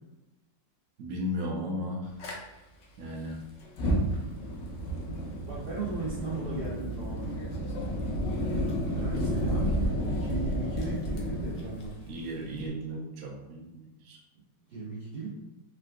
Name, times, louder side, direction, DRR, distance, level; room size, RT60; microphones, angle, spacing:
voice 1, 1.0-2.1 3.0-3.4 12.1-14.2, equal, 65° right, -1 dB, 0.9 m, -35 dB
Fire, 2.2-2.3 3.6-12.7, equal, 70° left, 0.7 m, -32 dB
sound 1, 4.4-11.0, right 4 dB, 90° left, 1.3 m, -41 dB
voice 2, 5.5-7.4 9.0-12.0 14.7-15.3, right 3 dB, 90° right, -7 dB, 0.5 m, -36 dB
3.7 x 2.2 x 2.4 m, 1.0 s
omnidirectional pair, 1.9 m